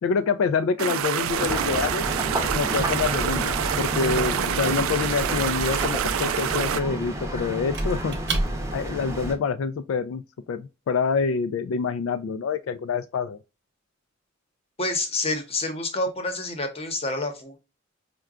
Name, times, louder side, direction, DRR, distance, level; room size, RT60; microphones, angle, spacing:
voice 1, 0.0-2.0 2.5-8.2 8.7-10.2 10.5-13.4, left 5 dB, 75° left, 0.3 m, -26 dB
sound 1, 0.8-6.8, right 9 dB, 85° right, 0.3 m, -27 dB
sound 2, 1.3-9.3, right 1 dB, 15° right, 0.7 m, -30 dB
Squeak / Wood, 1.8-9.0, right 2 dB, 60° right, 0.8 m, -35 dB
voice 2, 14.8-17.6, left 2 dB, 30° left, 0.8 m, -28 dB
4.7 x 2.2 x 2.3 m
head